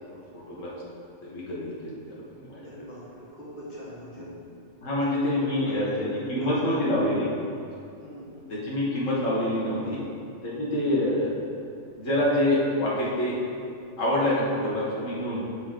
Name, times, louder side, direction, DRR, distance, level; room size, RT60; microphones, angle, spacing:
voice 1, 0.1-0.7 1.2-2.7 4.1-4.2 4.8-5.9 6.3-7.3 7.7-7.8 8.5-10.0 10.4-11.3 12.0-13.3 14.0-15.4, left 1 dB, 80° left, -7 dB, 1.7 m, -26 dB
voice 2, 2.6-4.3 4.8-7.0 8.0-8.3 9.9-10.0 14.5-14.7, right 1 dB, 35° left, -7 dB, 1.7 m, -39 dB
7.2 x 5.3 x 3.7 m, 2.4 s
omnidirectional pair, 1.3 m